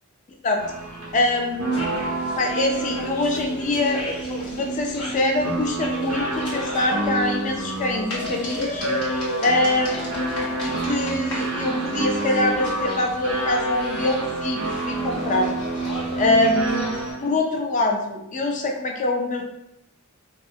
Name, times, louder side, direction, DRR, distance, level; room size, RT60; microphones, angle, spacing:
sound 1, 0.6-17.3, right 2 dB, 60° right, 0.6 m, -29 dB
voice 1, 1.1-1.8 2.4-4.2 4.5-8.8 9.4-15.6 16.2-16.9 17.2-19.4, left 2 dB, 35° left, 2 dB, 0.3 m, -24 dB
sound 2, 1.7-17.1, left 1 dB, 85° left, 0.8 m, -35 dB
2.3 x 2.0 x 2.6 m, 0.84 s
head